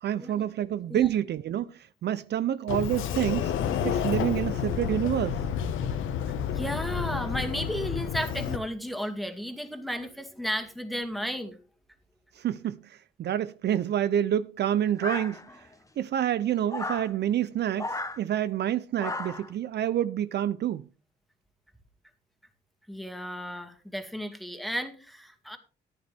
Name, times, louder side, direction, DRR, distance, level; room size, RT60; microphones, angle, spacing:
voice 1, 0.0-3.5 3.8-5.4 12.3-15.7 16.0-20.9, right 11 dB, 60° right, 0.5 m, -28 dB
Sliding door, 2.7-8.6, left 8 dB, 85° left, 1.2 m, -30 dB
voice 2, 6.5-11.6 22.9-25.6, equal, ahead, 2.2 m, -34 dB
sound 1, 15.0-15.7 16.7-17.1 17.8-18.2 19.0-19.5, left 2 dB, 15° left, 1.3 m, -34 dB
14.0 x 9.6 x 3.4 m
cardioid pair, 90°, 20 cm